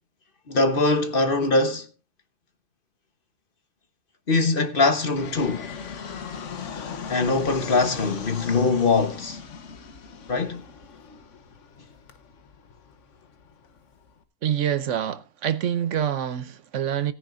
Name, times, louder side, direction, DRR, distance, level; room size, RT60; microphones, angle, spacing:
voice 1, 0.5-1.9 4.3-5.7 7.1-9.4 10.3-10.6, left 3 dB, 45° left, 1.1 m, -22 dB
Fixed-wing aircraft airplane, 5.2-14.2, left 6 dB, 65° left, 1.4 m, -38 dB
voice 2, 14.4-17.1, right 9 dB, 70° right, 1.1 m, -26 dB
17.5 x 9.7 x 2.5 m
omnidirectional pair, 1.4 m